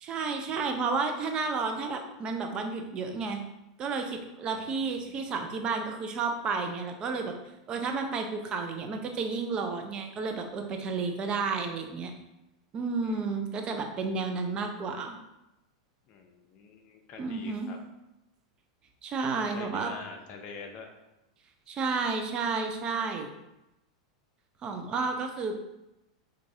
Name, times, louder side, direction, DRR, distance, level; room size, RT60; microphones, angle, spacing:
voice 1, 0.0-3.4 3.8-7.3 7.7-12.1 12.7-15.2 17.2-17.7 19.0-19.9 21.7-23.3 24.6-25.5, right 4 dB, 35° right, 4 dB, 0.6 m, -31 dB
voice 2, 4.5-5.5 13.0-13.2 13.6-13.8 16.1-17.8 19.5-20.9, left 5 dB, 45° left, 3 dB, 0.7 m, -46 dB
4.5 x 2.6 x 2.7 m, 0.92 s
hypercardioid pair, 100°, 3 cm